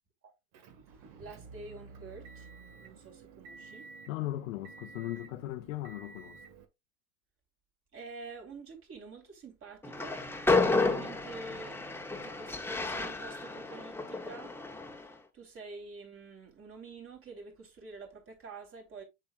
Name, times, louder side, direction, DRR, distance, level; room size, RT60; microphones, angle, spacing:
Motor vehicle (road) / Engine, 0.5-6.6, right 4 dB, 55° right, 1.9 m, -51 dB
voice 1, 0.8-2.5 2.8-3.9 7.9-10.2 10.5-19.0, right 4 dB, 35° right, 3.9 m, -48 dB
voice 2, 4.1-6.4, left 16 dB, 75° left, 0.8 m, -37 dB
Train, 9.8-15.1, left 3 dB, 5° left, 1.1 m, -31 dB
7.4 x 6.9 x 2.4 m
hypercardioid pair, 95°, 39 cm